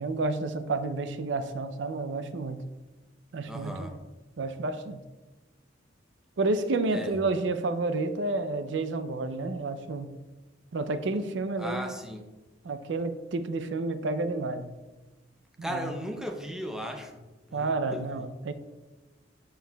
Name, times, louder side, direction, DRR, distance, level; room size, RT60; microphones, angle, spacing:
voice 1, 0.0-2.6 3.3-3.9 4.4-5.0 6.4-10.1 10.7-11.9 12.6-14.7 15.7-15.9 17.5-18.5, right 3 dB, 75° right, 10 dB, 0.5 m, -30 dB
voice 2, 3.5-4.0 6.9-7.2 11.6-12.3 15.6-17.2 17.5-18.2, equal, 5° right, 3 dB, 0.6 m, -36 dB
11.0 x 4.6 x 2.3 m, 1.1 s
head